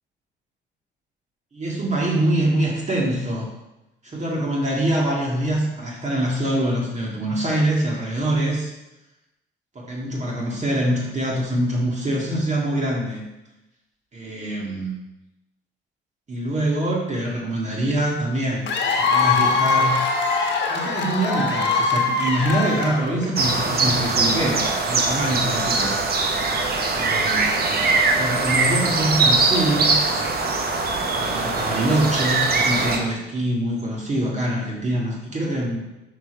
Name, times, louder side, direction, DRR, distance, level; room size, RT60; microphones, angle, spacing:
voice 1, 1.5-3.5 4.0-8.7 9.8-13.2 14.1-14.9 16.3-18.7 19.0-20.0 20.7-26.0 26.9-30.0 31.2-35.8, right 1 dB, 35° right, -3 dB, 1.8 m, -24 dB
Cheering / Applause / Crowd, 18.7-23.4, left 4 dB, 65° left, 1.2 m, -22 dB
sound 1, 23.4-33.0, right 3 dB, 50° right, 1.0 m, -21 dB
5.9 x 5.1 x 4.5 m, 0.96 s
cardioid pair, 90°, 20 cm